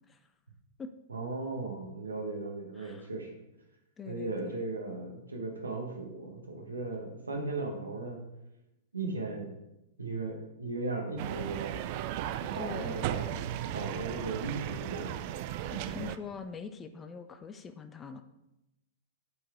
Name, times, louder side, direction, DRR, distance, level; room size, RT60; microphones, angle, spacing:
voice 1, 1.1-3.3 4.1-8.2 8.9-9.5 10.0-11.8 12.4-15.2, right 3 dB, 75° right, 1 dB, 1.1 m, -37 dB
voice 2, 2.8-3.1 4.0-4.6 12.5-13.1 15.7-18.2, left 5 dB, 15° left, 9 dB, 0.4 m, -43 dB
sound 1, 11.2-16.2, right 11 dB, 40° right, 0.4 m, -36 dB
9.9 x 4.6 x 3.6 m, 0.91 s
figure-of-eight pair, 100°, 0 cm